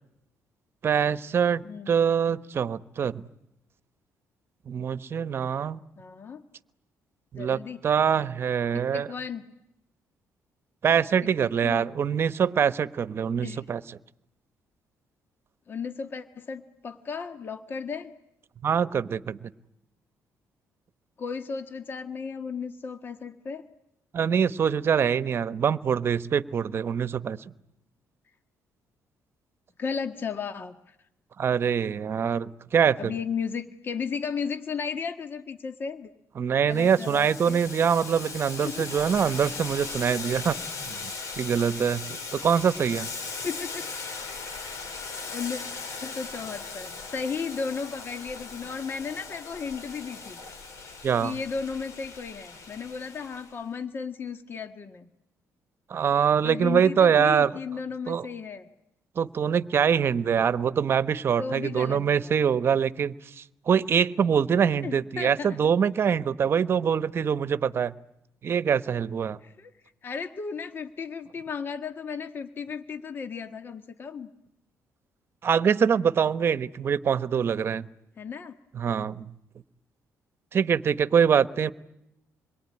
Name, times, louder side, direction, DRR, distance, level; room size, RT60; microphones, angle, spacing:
voice 1, 0.8-3.2 4.7-5.8 7.3-9.1 10.8-14.0 18.6-19.5 24.1-27.4 31.4-33.1 36.4-40.6 40.9-41.0 41.4-43.1 51.0-51.4 55.9-57.5 58.1-58.3 59.2-67.9 68.4-69.4 75.4-77.9 78.7-79.3 80.5-81.7, right 7 dB, 45° right, 14 dB, 1.1 m, -24 dB
voice 2, 1.6-1.9 6.0-6.4 7.3-7.8 8.7-9.4 11.4-11.9 13.4-13.7 15.7-18.1 21.2-23.6 29.8-30.9 33.0-36.1 36.7-37.6 38.6-38.9 40.0-40.1 43.4-43.8 45.3-45.6 46.0-50.4 51.2-55.1 56.4-58.7 61.4-62.3 64.8-65.5 69.4-69.7 70.0-74.3 78.2-78.5, left 5 dB, 40° left, 8 dB, 1.6 m, -35 dB
Boiling, 36.7-53.5, left 4 dB, 65° left, 6.1 m, -38 dB
27.5 x 22.5 x 9.7 m, 0.83 s
cardioid pair, 120°, 6 cm